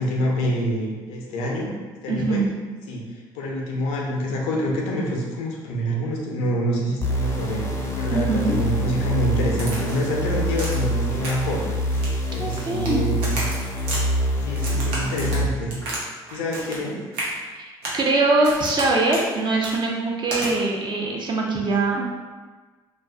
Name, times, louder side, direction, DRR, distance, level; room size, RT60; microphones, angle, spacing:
voice 1, 0.0-1.7 2.0-2.4 2.9-3.0 3.3-11.6 12.3-13.3 14.5-15.8 16.3-17.0, equal, 75° left, -2 dB, 0.5 m, -26 dB
voice 2, 2.1-2.5 8.1-8.6 12.4-13.0 17.5-22.1, right 3 dB, 40° right, -1 dB, 0.5 m, -22 dB
sound 1, 7.0-15.5, equal, 20° left, 0.5 m, -25 dB
Crack, 9.6-10.1 10.6-10.9 11.2-11.6 11.9-12.9 13.2-14.0 14.5-16.0 16.3-16.8 17.1-17.3 17.8-18.0 18.4-18.9 19.1-19.3 19.6-19.8 20.3-20.5, right 2 dB, 85° right, 0.6 m, -32 dB
2.4 x 2.3 x 2.2 m, 1.3 s
hypercardioid pair, 60°, 12 cm